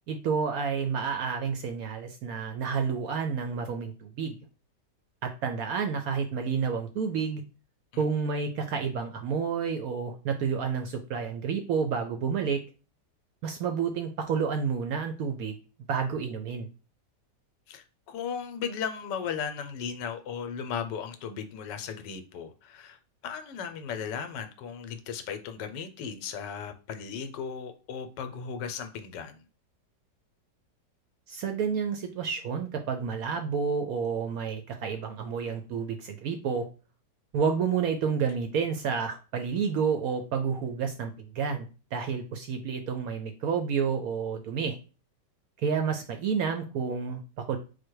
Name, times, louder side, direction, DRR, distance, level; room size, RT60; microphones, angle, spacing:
voice 1, 0.1-4.4 5.2-7.4 8.0-12.6 13.4-15.6 15.9-16.7 31.3-36.7 37.3-44.8 45.6-47.6, right 6 dB, 70° right, 0.9 m, -30 dB
voice 2, 17.7-23.0 23.2-29.4, left 7 dB, 80° left, 1.2 m, -36 dB
4.6 x 2.2 x 4.5 m
omnidirectional pair, 1.9 m